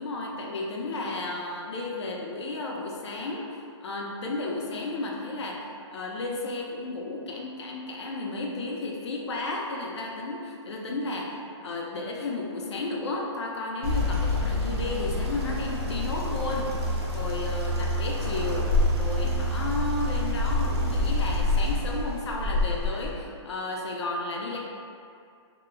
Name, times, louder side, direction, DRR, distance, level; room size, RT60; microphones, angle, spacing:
voice 1, 0.0-5.6 5.9-16.7 17.1-18.7 19.0-24.6, left 2 dB, 65° left, -2 dB, 0.6 m, -33 dB
sound 1, 13.8-23.1, left 1 dB, 60° right, 0.7 m, -27 dB
2.8 x 2.1 x 3.6 m, 2.4 s
hypercardioid pair, 180°, 15 cm